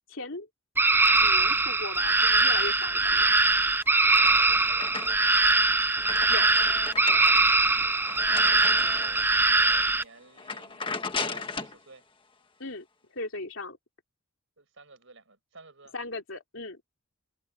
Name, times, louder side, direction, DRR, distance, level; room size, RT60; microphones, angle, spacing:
voice 1, 0.1-0.5 1.2-3.3 6.3-6.5 12.6-12.9 13.1-13.8 15.9-16.8, left 2 dB, 65° left, 3.2 m, -37 dB
sound 1, 0.8-10.0, right 3 dB, 10° right, 0.6 m, -22 dB
sound 2, 3.9-5.4 5.8-9.4 9.9-10.0 10.4-11.8, left 4 dB, 25° left, 1.5 m, -37 dB
voice 2, 4.1-5.4 7.6-12.0 14.6-15.9, right 3 dB, 65° right, 6.7 m, -52 dB
head